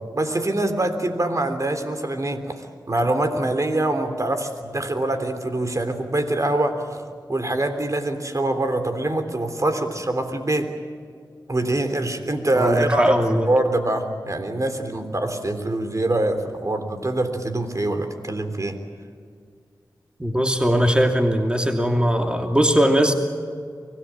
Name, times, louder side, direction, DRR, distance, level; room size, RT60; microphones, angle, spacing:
voice 1, 0.1-2.6 2.9-7.0 7.3-10.7 11.5-18.8, right 1 dB, 45° right, 7 dB, 3.4 m, -24 dB
voice 2, 12.6-13.5 20.2-23.1, equal, 10° right, 3 dB, 2.8 m, -20 dB
24.5 x 18.5 x 9.0 m, 2.1 s
cardioid pair, 45°, 8 cm